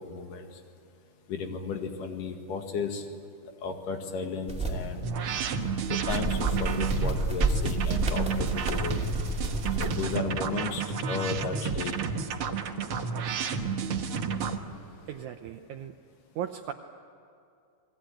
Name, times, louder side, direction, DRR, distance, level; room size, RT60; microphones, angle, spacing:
voice 1, 0.1-0.5 1.3-3.0 3.6-5.1 5.9-9.0 9.8-10.8 11.1-12.0, left 5 dB, 80° left, 4 dB, 3.5 m, -34 dB
sound 1, 4.5-10.2, right 2 dB, ahead, 2.1 m, -30 dB
sound 2, 5.0-14.6, right 5 dB, 55° right, 1.7 m, -31 dB
sound 3, 5.1-15.2, left 1 dB, 35° left, 3.5 m, -53 dB
voice 2, 15.1-15.9 16.4-16.7, right 10 dB, 75° right, 6 dB, 2.1 m, -36 dB
29.0 x 20.5 x 9.1 m, 2.5 s
omnidirectional pair, 3.7 m